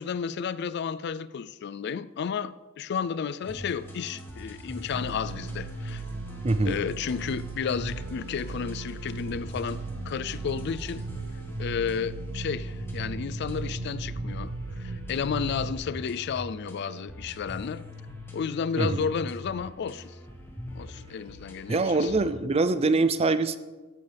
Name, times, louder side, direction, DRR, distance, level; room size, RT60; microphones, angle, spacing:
voice 1, 0.0-6.0 6.6-11.0 11.6-14.5 14.8-17.8 18.3-20.2 20.7-22.1, left 6 dB, 55° left, 16 dB, 0.4 m, -32 dB
sound 1, 3.4-22.2, left 1 dB, 10° left, 1.8 m, -43 dB
alien technology, 4.9-15.8, right 3 dB, 65° right, 0.7 m, -37 dB
voice 2, 6.4-6.8 18.8-19.1 21.7-23.6, right 3 dB, 30° right, 13 dB, 0.5 m, -24 dB
14.0 x 11.0 x 3.4 m, 1.2 s
head